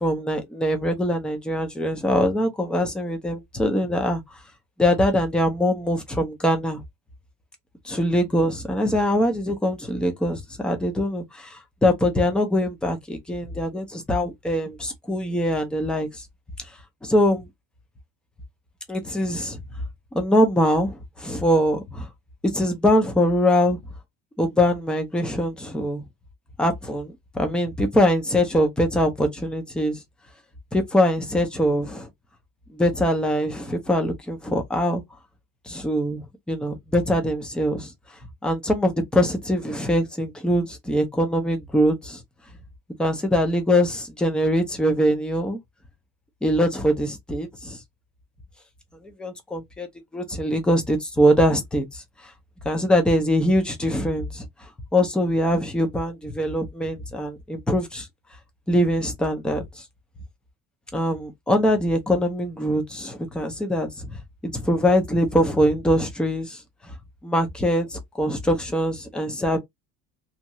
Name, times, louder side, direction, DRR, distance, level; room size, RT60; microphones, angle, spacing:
voice 1, 0.0-4.2 4.8-6.8 7.9-16.2 17.0-17.5 18.9-19.6 20.1-22.1 22.4-23.8 24.4-26.0 26.6-30.0 30.7-32.1 32.7-35.0 35.7-36.2 36.5-37.9 38.4-42.2 43.0-45.6 46.4-47.8 49.2-49.9 50.1-52.0 52.7-54.4 54.9-58.1 58.7-59.6 60.9-64.1 64.4-66.6 67.2-69.6, equal, 5° left, 0.4 m, -23 dB
2.7 x 2.3 x 2.9 m
cardioid pair, 175°, 34 cm